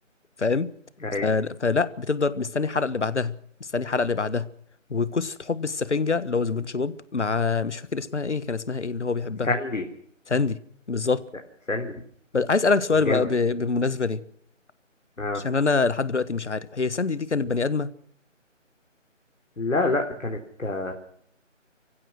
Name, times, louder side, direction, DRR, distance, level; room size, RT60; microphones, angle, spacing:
voice 1, 0.4-0.7 1.2-4.5 4.9-9.5 10.3-10.6 10.9-11.2 12.3-14.2 15.3-17.9, left 4 dB, 60° left, 1.6 m, -25 dB
voice 2, 9.4-9.8 11.7-11.9 13.1-13.2 15.2-15.4 19.6-20.9, left 2 dB, 80° left, 3.6 m, -26 dB
29.5 x 15.5 x 6.2 m
figure-of-eight pair, 165°, 38 cm